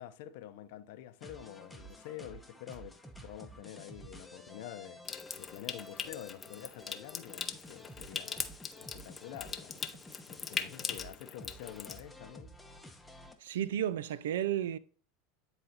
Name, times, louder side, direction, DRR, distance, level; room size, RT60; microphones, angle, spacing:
voice 1, 0.0-3.0 3.2-8.4 8.9-9.7 10.3-12.5, left 12 dB, 70° left, 0.6 m, -47 dB
sound 1, 1.2-13.3, equal, 5° left, 0.9 m, -52 dB
Water tap faucet / Sink (filling or washing) / Trickle dribble, 5.0-12.0, left 6 dB, 25° left, 0.5 m, -41 dB
voice 2, 13.4-14.8, right 10 dB, 80° right, 0.3 m, -32 dB
9.4 x 4.0 x 2.8 m
hypercardioid pair, 100°, 0 cm